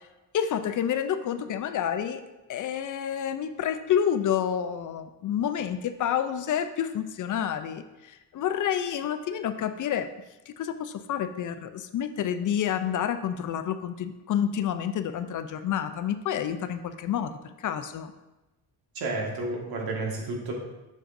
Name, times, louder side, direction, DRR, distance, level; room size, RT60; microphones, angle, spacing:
voice 1, 0.3-2.2 2.5-10.1 10.5-17.3 17.6-18.1, left 9 dB, 55° left, 10 dB, 0.5 m, -29 dB
voice 2, 18.9-20.5, right 2 dB, 65° right, 0 dB, 1.7 m, -31 dB
7.5 x 6.5 x 2.6 m, 1.0 s
cardioid pair, 110°, 38 cm